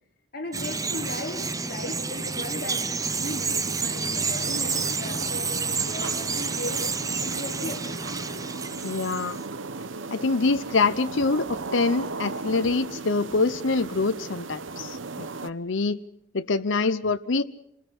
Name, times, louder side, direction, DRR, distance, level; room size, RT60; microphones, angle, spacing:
voice 1, 0.3-6.9 7.2-7.9, left 2 dB, 50° left, 1 dB, 4.7 m, -37 dB
Bird vocalization bird call bird song, 0.5-9.4, right 4 dB, 20° right, 0.8 m, -29 dB
sound 1, 2.3-15.5, right 3 dB, 85° right, 1.0 m, -37 dB
voice 2, 8.8-9.4 10.1-16.0 16.3-17.4, left 3 dB, 80° left, 9 dB, 0.8 m, -25 dB
28.0 x 20.5 x 6.2 m, 0.76 s
head